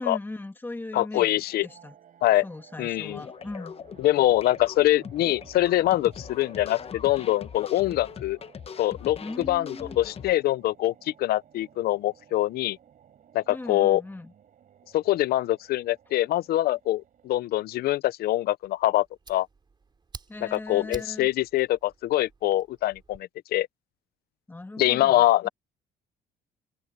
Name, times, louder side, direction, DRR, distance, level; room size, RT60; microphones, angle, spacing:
voice 1, 0.0-2.0 2.4-3.7 9.2-10.0 13.5-14.3 20.3-21.3 24.5-25.5, left 2 dB, 10° left, 2.2 m, -39 dB
voice 2, 0.9-1.7 2.2-2.4 2.8-3.2 4.0-8.4 8.8-12.8 13.3-14.0 14.9-19.5 20.4-23.7 24.8-25.5, left 15 dB, 65° left, 0.7 m, -24 dB
sound 1, 1.3-17.9, right 9 dB, 50° right, 5.0 m, -55 dB
sound 2, 3.1-10.3, left 7 dB, 35° left, 1.0 m, -42 dB
Fire, 18.6-23.2, right 4 dB, 25° right, 3.7 m, -49 dB
open air
cardioid pair, 110°, 17 cm